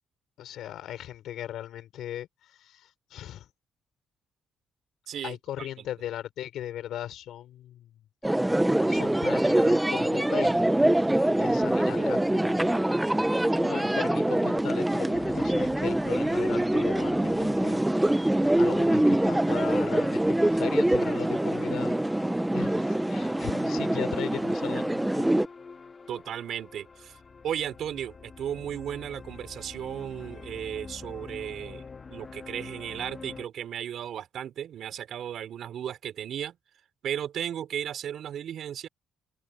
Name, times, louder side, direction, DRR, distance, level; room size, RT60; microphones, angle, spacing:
voice 1, 0.4-3.5 5.2-8.0 8.9-10.6 10.9-13.2 13.6-17.8 18.5-22.0 22.5-25.3, left 12 dB, 80° left, 5.3 m, -38 dB
voice 2, 5.1-5.9 26.1-27.2 27.4-36.6 37.0-38.9, right 10 dB, 70° right, 4.1 m, -35 dB
sound 1, 8.2-25.5, right 1 dB, 10° right, 1.2 m, -24 dB
sound 2, 15.1-33.4, left 4 dB, 35° left, 2.8 m, -45 dB
open air
cardioid pair, 90°, 0 cm